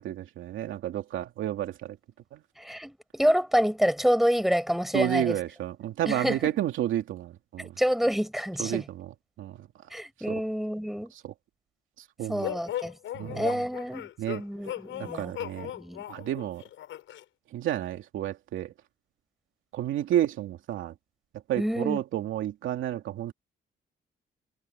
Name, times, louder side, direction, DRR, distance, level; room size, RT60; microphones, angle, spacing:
voice 1, 0.0-2.0 2.3-2.4 4.9-7.7 8.6-9.1 9.4-9.7 10.3-10.4 11.1-11.3 12.2-12.5 13.1-13.6 14.2-14.4 15.1-15.7 16.1-16.6 17.5-18.7 19.7-20.9 21.5-23.3, right 12 dB, 80° right, 2.6 m, -31 dB
voice 2, 2.6-5.4 6.1-6.5 7.8-8.8 9.9-11.1 12.3-12.9 13.2-14.1 14.4-15.3 15.8-16.0 21.6-22.0, equal, ahead, 6.5 m, -27 dB
sound 1, 12.4-17.2, left 12 dB, 80° left, 6.9 m, -37 dB
cardioid pair, 90°, 20 cm